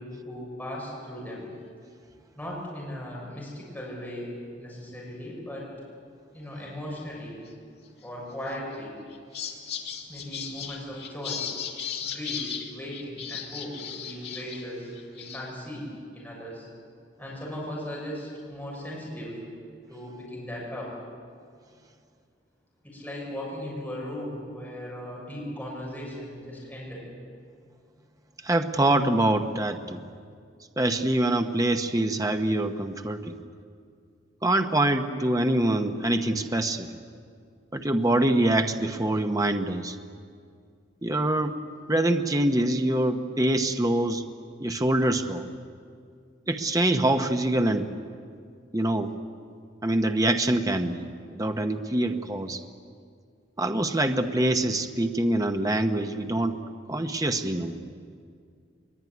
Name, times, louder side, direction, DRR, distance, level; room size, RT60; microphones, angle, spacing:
voice 1, 0.0-1.5 2.3-5.7 6.3-7.4 8.0-9.0 10.1-11.5 12.0-15.9 16.1-16.7 17.2-19.4 19.9-20.9 22.8-27.0, equal, 10° left, -5 dB, 7.2 m, -37 dB
sound 1, 8.5-8.7 9.1-14.7 14.9-15.6, left 8 dB, 60° left, 2.6 m, -36 dB
voice 2, 28.4-30.0 30.8-33.4 34.4-36.9 37.7-40.0 41.0-41.6 41.9-44.2 44.6-45.4 46.5-47.9 48.7-49.1 49.8-51.1 51.3-52.6 53.6-56.6 56.9-57.8, right 1 dB, 20° right, 5 dB, 1.0 m, -25 dB
22.5 x 22.0 x 9.5 m, 2.2 s
head